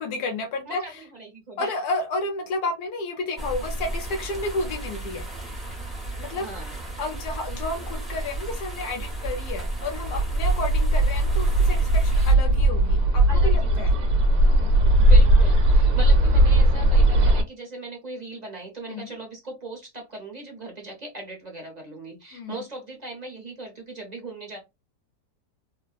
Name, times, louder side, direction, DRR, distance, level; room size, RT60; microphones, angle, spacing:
voice 1, 0.0-0.8 1.6-5.3 6.2-6.5 7.0-13.9 14.5-14.7 18.9-19.1 22.3-22.6, left 2 dB, 70° left, 1.2 m, -31 dB
voice 2, 0.7-1.7 6.4-6.8 13.3-14.2 15.0-24.6, right 2 dB, 35° right, 0.8 m, -39 dB
sound 1, 3.4-12.3, right 2 dB, ahead, 0.5 m, -32 dB
Bird, 10.1-17.4, right 1 dB, 65° right, 1.0 m, -18 dB
3.5 x 2.1 x 2.3 m
omnidirectional pair, 1.8 m